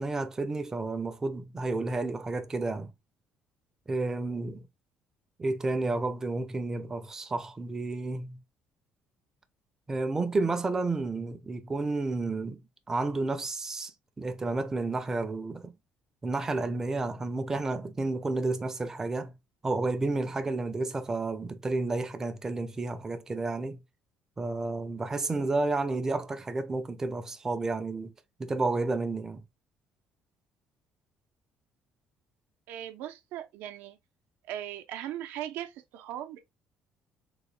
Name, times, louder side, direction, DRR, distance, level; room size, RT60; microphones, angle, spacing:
voice 1, 0.0-2.9 3.9-4.6 5.4-8.4 9.9-12.6 12.9-13.9 14.2-15.7 16.2-19.3 19.6-23.8 24.4-28.1 28.4-29.4, right 3 dB, 15° right, 0.4 m, -31 dB
voice 2, 32.7-34.0 34.5-36.4, right 12 dB, 85° right, 0.6 m, -38 dB
3.8 x 2.2 x 3.0 m
cardioid pair, 155°, 3 cm